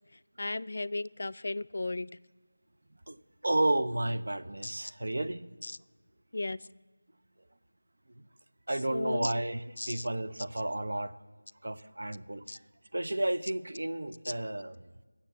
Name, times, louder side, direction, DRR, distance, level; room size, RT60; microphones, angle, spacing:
voice 1, 0.4-2.1 4.6-4.7 5.6-5.8 6.3-6.7 8.9-9.3 9.8-10.1 12.5-12.6 14.2-14.3, left 2 dB, 50° left, 16 dB, 0.3 m, -35 dB
voice 2, 3.4-5.5 8.2-8.3 8.7-11.2 11.6-12.4 12.9-14.9, right 1 dB, 60° right, 9 dB, 1.0 m, -32 dB
16.5 x 7.4 x 7.2 m, 1.4 s
figure-of-eight pair, 175°, 0 cm